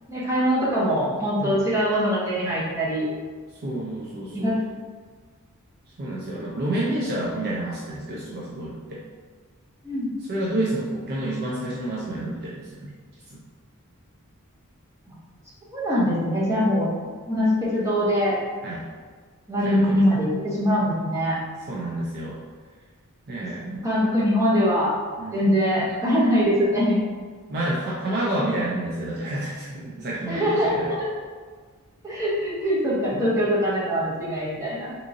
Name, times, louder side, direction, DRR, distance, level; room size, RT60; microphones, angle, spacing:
voice 1, 0.1-3.1 4.3-4.6 9.8-10.1 15.1-15.2 15.7-18.4 19.5-21.4 23.4-25.0 25.3-27.0 30.3-31.2 32.0-34.9, equal, 15° right, -8 dB, 1.0 m, -23 dB
voice 2, 3.6-4.5 6.0-9.0 10.3-12.9 13.3-13.4 18.6-18.8 19.6-20.0 21.7-22.4 23.3-23.6 25.2-25.4 27.5-30.9 33.1-33.2, right 1 dB, 45° right, -5 dB, 0.5 m, -29 dB
3.6 x 2.9 x 2.6 m, 1.5 s
head